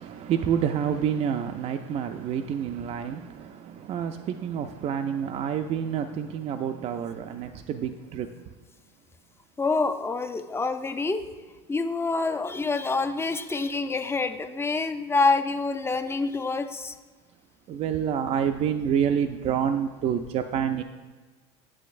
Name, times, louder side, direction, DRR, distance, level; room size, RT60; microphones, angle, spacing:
voice 1, 0.0-8.4 17.7-20.8, right 8 dB, 45° right, 0.4 m, -28 dB
voice 2, 9.6-11.2 11.7-16.9, left 3 dB, 15° left, 0.5 m, -26 dB
8.4 x 7.4 x 2.5 m
supercardioid pair, 95°, 16 cm